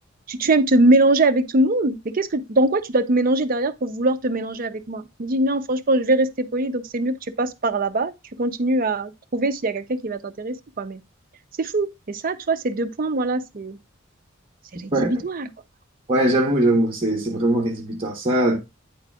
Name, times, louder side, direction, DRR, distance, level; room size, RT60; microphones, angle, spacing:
voice 1, 0.3-8.1 8.4-11.0 11.6-13.8 14.8-15.5, right 2 dB, 45° right, 0.6 m, -22 dB
voice 2, 16.1-18.6, right 1 dB, 30° right, 1.2 m, -20 dB
9.1 x 3.9 x 3.4 m
head